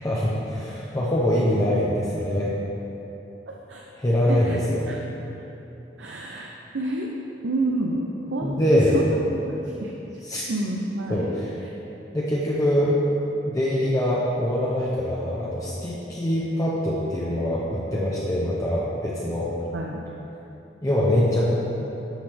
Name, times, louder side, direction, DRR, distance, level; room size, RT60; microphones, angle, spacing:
voice 1, 0.0-2.5 4.0-4.9 8.4-9.0 10.2-10.4 11.1-11.5 12.1-12.9 13.4-19.5 20.8-21.5, left 1 dB, 20° left, -7 dB, 0.7 m, -23 dB
voice 2, 3.5-3.8 4.3-4.6 4.9-5.0 6.0-7.1 7.4-8.5 8.9-9.2 9.4-9.6 9.8-9.9 10.5-11.3 19.7-20.0, right 2 dB, 90° right, -1 dB, 0.6 m, -29 dB
9.1 x 6.0 x 3.4 m, 3.0 s
head